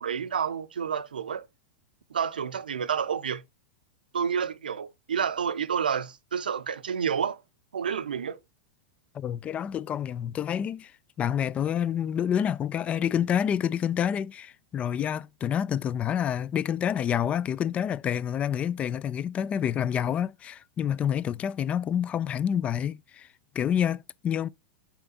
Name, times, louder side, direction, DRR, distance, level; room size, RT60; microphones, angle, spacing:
voice 1, 0.0-1.5 2.1-3.4 4.1-7.4 7.7-8.4, right 7 dB, 80° right, 0.6 m, -29 dB
voice 2, 9.1-10.9 11.2-23.3 23.5-24.5, left 9 dB, 25° left, 0.4 m, -28 dB
5.6 x 4.2 x 4.0 m
hypercardioid pair, 100°, 5 cm